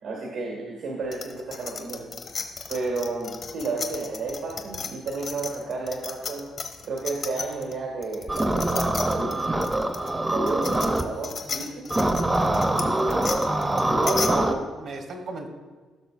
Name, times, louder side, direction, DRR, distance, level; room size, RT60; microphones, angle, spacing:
voice 1, 0.0-2.2 2.7-6.5 6.8-9.5 10.3-11.9, right 3 dB, 85° right, -2 dB, 2.0 m, -32 dB
sound 1, 1.1-7.7 8.0-14.3, left 5 dB, 55° left, 1.1 m, -34 dB
sound 2, 8.3-11.0 11.9-14.5, right 1 dB, 15° right, 0.7 m, -24 dB
voice 2, 13.9-15.5, right 3 dB, 65° right, 3 dB, 1.3 m, -31 dB
16.0 x 6.3 x 2.6 m, 1.4 s
cardioid pair, 90°, 0 cm